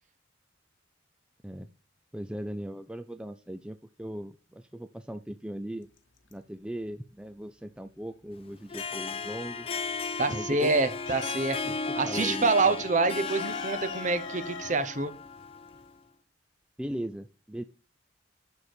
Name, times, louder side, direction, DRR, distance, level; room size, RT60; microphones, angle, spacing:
voice 1, 2.1-5.9 6.3-9.7 10.3-10.8 11.6-11.8 12.0-12.8 16.8-17.6, right 1 dB, 5° right, 0.4 m, -38 dB
sound 1, 5.9-6.8 7.1-9.0 9.4-11.8 12.1-12.2 12.5-16.0, left 5 dB, 70° left, 1.1 m, -43 dB
Harp, 8.6-15.9, left 4 dB, 30° left, 0.7 m, -35 dB
voice 2, 10.2-15.1, right 3 dB, 40° right, 0.8 m, -27 dB
6.9 x 6.6 x 4.4 m
head